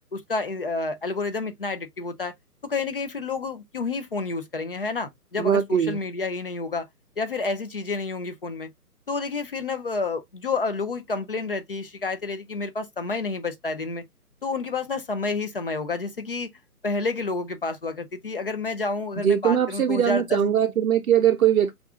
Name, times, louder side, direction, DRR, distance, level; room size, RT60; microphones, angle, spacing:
voice 1, 0.1-2.3 2.6-6.9 7.2-8.7 9.1-14.0 14.4-16.5 16.8-20.4, left 3 dB, 40° left, 0.5 m, -29 dB
voice 2, 5.4-6.0 19.2-21.8, right 9 dB, 65° right, 0.5 m, -21 dB
5.2 x 2.4 x 2.3 m
figure-of-eight pair, 140°, 47 cm